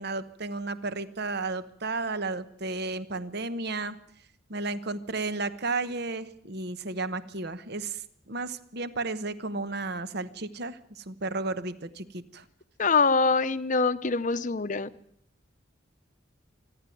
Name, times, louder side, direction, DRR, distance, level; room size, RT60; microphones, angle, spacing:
voice 1, 0.0-4.0 4.5-12.4, right 3 dB, 55° right, 13 dB, 1.1 m, -33 dB
voice 2, 12.8-14.9, left 4 dB, 40° left, 12 dB, 0.8 m, -24 dB
26.5 x 11.0 x 9.2 m, 0.68 s
head